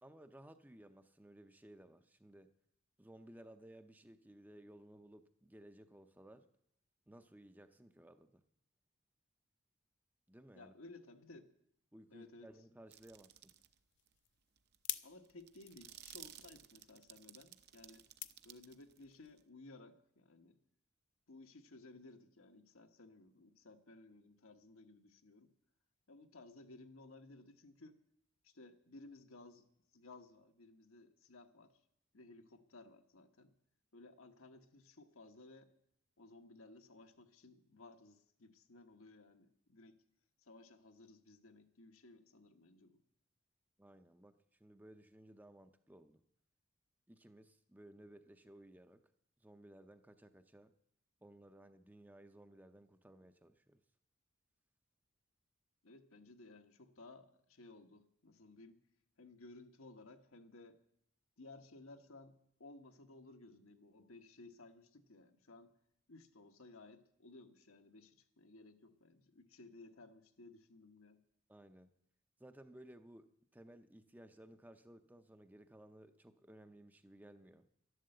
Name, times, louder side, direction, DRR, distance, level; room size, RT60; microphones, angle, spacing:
voice 1, 0.0-2.5 3.0-6.5 7.1-8.4 10.3-10.7 11.9-13.5 43.8-44.3 44.6-46.2 47.1-49.0 49.4-50.7 51.2-53.8 71.5-71.9 72.4-73.3 73.5-77.7, right 1 dB, 10° right, 8 dB, 0.5 m, -58 dB
voice 2, 10.5-11.5 12.1-12.5 15.0-18.1 18.4-20.6 21.3-25.5 26.1-27.9 28.4-29.7 29.9-31.7 32.1-33.5 33.9-35.7 36.2-40.0 40.4-43.0 55.8-58.8 59.2-60.8 61.4-65.7 66.1-71.2, left 2 dB, 80° left, 6 dB, 1.3 m, -58 dB
sound 1, 12.9-13.7 14.1-14.2 14.6-19.4, right 12 dB, 50° right, 0.7 m, -57 dB
sound 2, 13.5-19.1, left 14 dB, 55° left, 0.6 m, -50 dB
12.0 x 11.5 x 7.8 m, 0.73 s
head